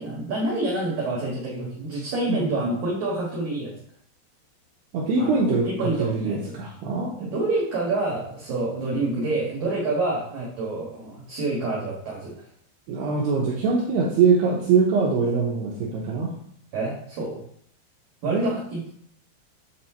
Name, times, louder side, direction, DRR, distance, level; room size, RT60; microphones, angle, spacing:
voice 1, 0.0-3.7 5.2-6.6 7.2-12.3 16.7-17.4 18.2-18.8, right 2 dB, 65° right, -4 dB, 2.3 m, -27 dB
voice 2, 2.3-2.6 4.9-7.3 12.9-16.4 18.2-18.5, right 4 dB, 85° right, -3 dB, 2.3 m, -23 dB
8.3 x 4.3 x 4.3 m, 0.64 s
omnidirectional pair, 6.0 m